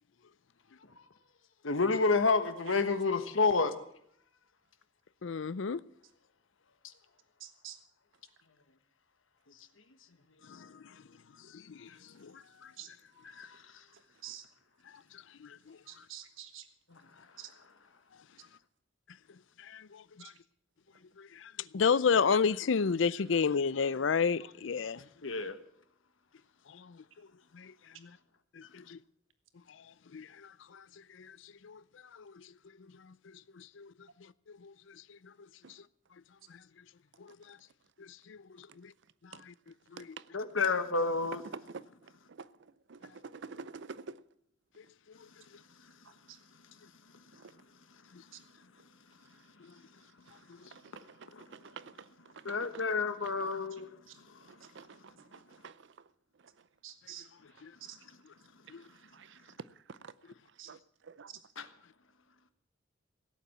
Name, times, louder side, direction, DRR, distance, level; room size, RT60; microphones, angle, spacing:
voice 1, 1.6-3.7 13.3-13.6 16.9-17.0 25.2-25.5 40.3-41.4 51.3-51.4 52.4-54.0 61.6-61.7, left 4 dB, 85° left, 1.3 m, -29 dB
voice 2, 5.2-5.8 10.5-11.0 11.5-12.7 15.4-15.8 19.6-20.3 21.2-25.1 26.7-27.0 27.5-27.7 28.0-28.2 28.5-29.0 29.7-29.8 30.1-30.8 31.1-31.8 32.1-32.4 33.5-33.9 34.5-35.3 35.7-35.8 36.5-36.6 37.2-37.6 38.0-38.9 39.2-39.5 39.9-40.2 48.1-48.2 49.6-49.7 57.6-57.7 58.7-58.8, left 6 dB, 70° left, 0.5 m, -33 dB
voice 3, 7.4-7.8 12.8-12.9 14.2-14.4 15.9-16.7 17.4-17.5 56.8-57.3 57.8-58.0 60.6-60.7, right 11 dB, 90° right, 1.4 m, -46 dB
voice 4, 42.9-44.2 50.7-50.8 51.5-51.8 54.8-54.9 55.3-55.7 59.1-59.3 60.0-60.1 60.7-60.8 61.1-61.3, right 4 dB, 65° right, 0.6 m, -46 dB
17.0 x 8.5 x 8.5 m
head